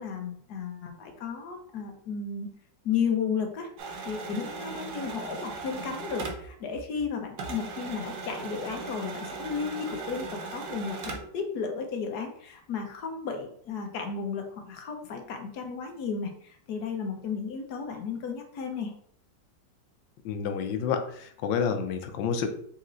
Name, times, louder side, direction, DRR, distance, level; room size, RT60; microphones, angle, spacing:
voice 1, 0.0-2.5 2.8-3.7 4.0-18.9, left 6 dB, 65° left, 3 dB, 1.2 m, -33 dB
sound 1, 3.8-7.1 7.4-11.4, right 4 dB, 65° right, 1.3 m, -38 dB
voice 2, 20.2-22.5, left 6 dB, 85° left, 7 dB, 1.3 m, -29 dB
4.2 x 2.9 x 3.8 m, 0.62 s
omnidirectional pair, 2.0 m